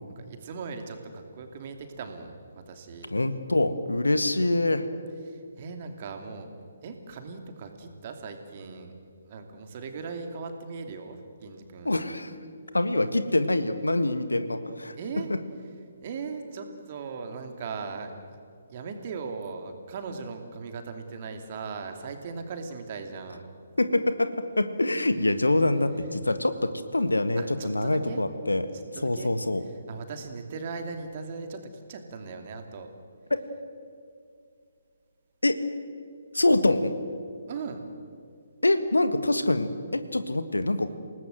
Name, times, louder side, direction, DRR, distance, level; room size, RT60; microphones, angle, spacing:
voice 1, 0.2-2.4 2.7-3.1 5.2-6.5 6.8-8.9 9.2-11.9 14.9-15.3 16.0-18.1 18.7-23.5 27.4-28.2 28.5-28.6 28.9-29.3 29.9-32.9 37.5-37.8, right 5 dB, 35° right, 5 dB, 2.8 m, -38 dB
voice 2, 3.1-4.9 11.9-12.3 12.7-14.9 15.3-15.4 23.8-28.6 29.0-29.6 35.4-35.6 36.3-36.9 38.6-41.0, left 2 dB, 75° left, 11 dB, 1.7 m, -25 dB
28.5 x 19.0 x 7.9 m, 2.3 s
figure-of-eight pair, 135°, 0 cm